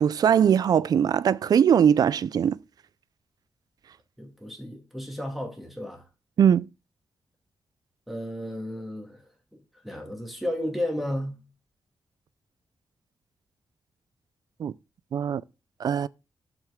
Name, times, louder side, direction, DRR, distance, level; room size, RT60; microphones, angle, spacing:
voice 1, 0.0-2.6 6.4-6.7 14.6-14.7 15.1-15.4 15.8-16.1, right 8 dB, 60° right, 0.4 m, -21 dB
voice 2, 4.2-6.0 8.1-9.2 9.8-11.4, left 1 dB, ahead, 2.3 m, -33 dB
7.4 x 6.0 x 3.6 m
wide cardioid pair, 125°, 7 cm